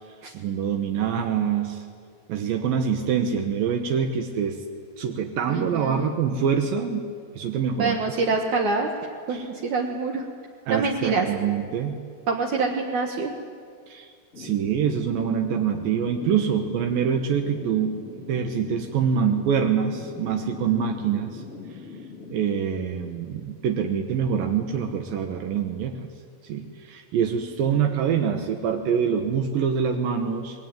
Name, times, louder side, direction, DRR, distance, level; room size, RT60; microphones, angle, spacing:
voice 1, 0.3-1.8 2.3-4.6 5.0-7.1 7.3-8.0 9.3-9.5 10.7-12.0 13.9-14.1 14.4-18.0 18.3-21.4 22.3-26.1 26.4-30.6, right 7 dB, 80° right, 5 dB, 3.0 m, -25 dB
voice 2, 5.5-6.1 7.8-8.9 9.3-10.3 10.7-11.3 12.3-13.3, right 4 dB, 65° right, 1 dB, 2.7 m, -25 dB
sound 1, 14.3-22.6, left 4 dB, 30° left, 1.7 m, -41 dB
26.0 x 21.0 x 9.3 m, 2.1 s
omnidirectional pair, 4.1 m